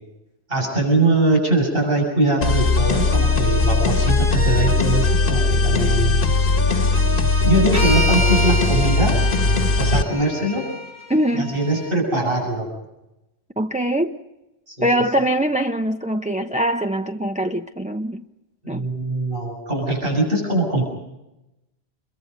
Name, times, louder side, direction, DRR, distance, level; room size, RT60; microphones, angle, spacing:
voice 1, 0.5-6.2 7.4-9.2 9.8-10.7 11.4-12.7 14.7-14.9 18.6-20.8, right 2 dB, 60° right, 7.0 m, -22 dB
sound 1, 2.4-10.0, left 3 dB, 55° left, 1.5 m, -19 dB
sound 2, 7.7-11.9, left 2 dB, 75° right, 4.6 m, -28 dB
voice 2, 11.1-11.5 13.6-14.1 14.8-18.2 18.7-18.9, right 1 dB, 10° right, 0.8 m, -22 dB
29.0 x 22.5 x 5.4 m
omnidirectional pair, 1.1 m